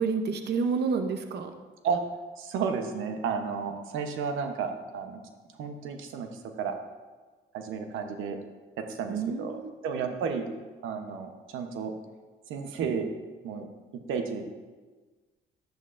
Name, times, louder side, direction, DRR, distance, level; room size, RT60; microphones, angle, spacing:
voice 1, 0.0-1.5 9.1-9.7 10.0-10.1, right 5 dB, 55° right, 6 dB, 0.8 m, -29 dB
voice 2, 2.4-5.2 5.5-6.8 7.5-8.4 8.8-10.5 10.8-11.9 12.5-13.1 13.4-13.7 13.9-14.4, right 6 dB, 90° right, 5 dB, 0.9 m, -32 dB
11.0 x 11.0 x 2.6 m, 1.3 s
cardioid pair, 90°, 20 cm